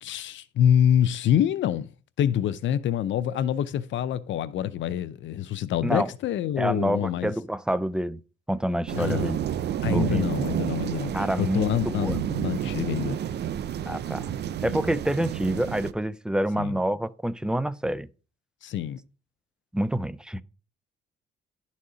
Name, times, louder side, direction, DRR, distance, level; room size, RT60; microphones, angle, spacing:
voice 1, 0.0-1.9 2.2-7.3 8.9-9.4 9.8-13.2 16.5-16.7 18.6-19.0, left 10 dB, 70° left, 0.6 m, -26 dB
voice 2, 6.6-8.2 8.5-9.5 9.9-10.3 11.1-12.2 13.9-14.3 14.6-18.1 19.7-20.4, right 1 dB, 5° right, 0.4 m, -27 dB
sound 1, 8.9-15.9, right 10 dB, 60° right, 0.6 m, -30 dB
11.5 x 4.2 x 4.9 m
cardioid pair, 90°, 20 cm